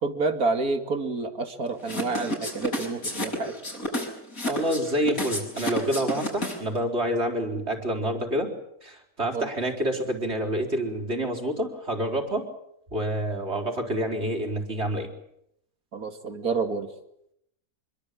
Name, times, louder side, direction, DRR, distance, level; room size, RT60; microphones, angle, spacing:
voice 1, 0.0-3.5 9.3-9.5 15.9-16.9, right 3 dB, 80° right, 7 dB, 2.9 m, -28 dB
sound 1, 1.8-6.8, left 1 dB, 70° left, 6.8 m, -30 dB
voice 2, 4.5-8.5 8.8-12.4 12.9-15.1, right 1 dB, 45° right, 2 dB, 4.7 m, -28 dB
26.0 x 23.5 x 8.5 m, 0.78 s
omnidirectional pair, 1.5 m